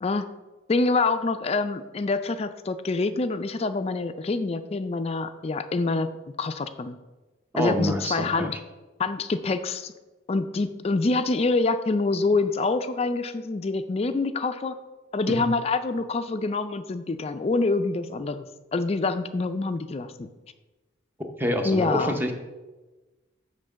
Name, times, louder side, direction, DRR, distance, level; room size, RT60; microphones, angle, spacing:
voice 1, 0.7-6.1 6.4-7.0 7.6-8.6 9.0-9.9 10.3-14.8 15.1-18.5 18.7-20.3 21.6-22.2, left 3 dB, 30° left, 10 dB, 0.4 m, -26 dB
voice 2, 7.5-8.6 15.3-15.5 21.4-22.3, equal, 10° right, 4 dB, 0.7 m, -27 dB
7.8 x 3.7 x 6.2 m, 1.2 s
head